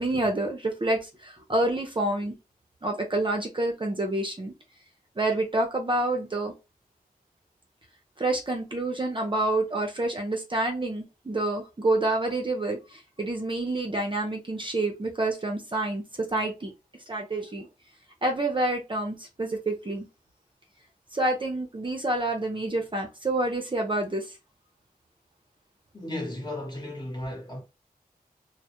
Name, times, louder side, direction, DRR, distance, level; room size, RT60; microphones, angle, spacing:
voice 1, 0.0-2.4 2.8-4.5 5.2-6.5 8.2-16.7 17.1-17.7 18.2-20.1 21.1-24.3, right 2 dB, 30° right, 0.6 m, -28 dB
voice 2, 25.9-27.6, left 1 dB, 25° left, 1.0 m, -35 dB
2.1 x 2.1 x 2.8 m
cardioid pair, 50°, 16 cm